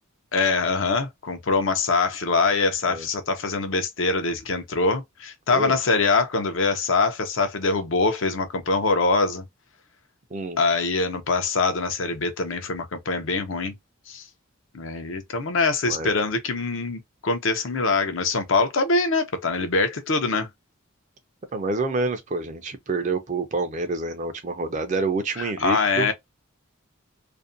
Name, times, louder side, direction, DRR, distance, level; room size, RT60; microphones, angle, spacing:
voice 1, 0.3-9.4 10.6-13.7 14.1-14.2 14.7-20.5 25.4-26.1, left 3 dB, 65° left, 0.6 m, -24 dB
voice 2, 21.5-26.1, right 3 dB, 35° right, 0.4 m, -27 dB
2.5 x 2.1 x 2.5 m
head